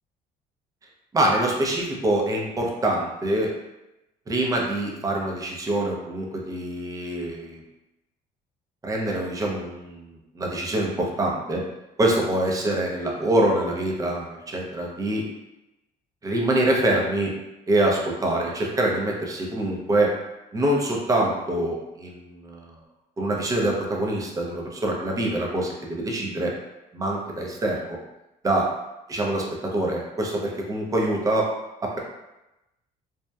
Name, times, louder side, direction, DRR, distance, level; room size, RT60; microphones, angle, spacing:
voice 1, 1.1-3.5 4.3-7.6 8.8-11.6 12.0-15.3 16.2-17.3 17.7-20.1 20.5-22.8 23.2-26.5 26.9-28.0 28.4-28.7 29.1-31.5 31.8-32.0, right 1 dB, 20° right, -1 dB, 0.5 m, -25 dB
2.7 x 2.0 x 2.2 m, 0.95 s
cardioid pair, 110°, 17 cm